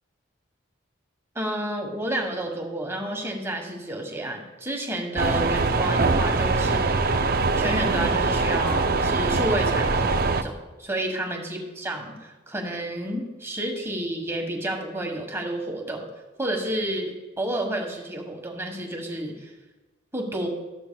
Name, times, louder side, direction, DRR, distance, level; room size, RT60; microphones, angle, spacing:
voice 1, 1.3-10.5 10.8-16.0 16.4-19.5 20.1-20.5, right 1 dB, 15° right, 2 dB, 1.4 m, -30 dB
sound 1, 5.2-10.4, right 3 dB, 50° right, 0.5 m, -23 dB
14.0 x 12.5 x 2.3 m, 1.1 s
head